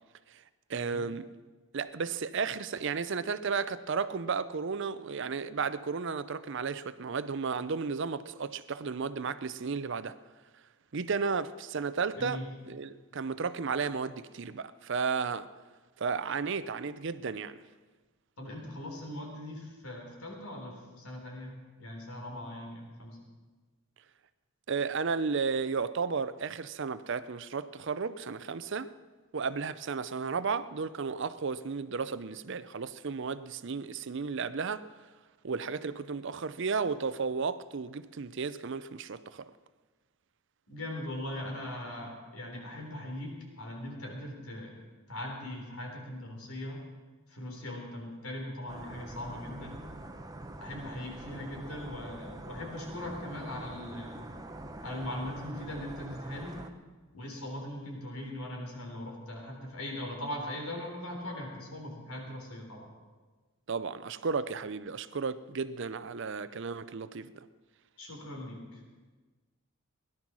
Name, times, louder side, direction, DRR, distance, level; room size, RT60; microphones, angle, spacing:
voice 1, 0.7-1.3 1.7-10.1 10.9-12.4 12.7-15.5 16.0-17.6 24.7-28.9 29.3-34.9 35.4-39.5 63.7-67.3, right 5 dB, 55° right, 0.5 m, -33 dB
voice 2, 12.2-12.5 18.4-23.2 40.7-43.3 43.6-44.8 45.1-46.8 47.3-49.8 50.6-54.2 54.8-56.6 57.1-62.9 68.0-68.8, left 1 dB, 80° left, 3.7 m, -40 dB
sound 1, 48.7-56.7, right 1 dB, 15° right, 0.7 m, -45 dB
17.0 x 11.0 x 6.1 m
head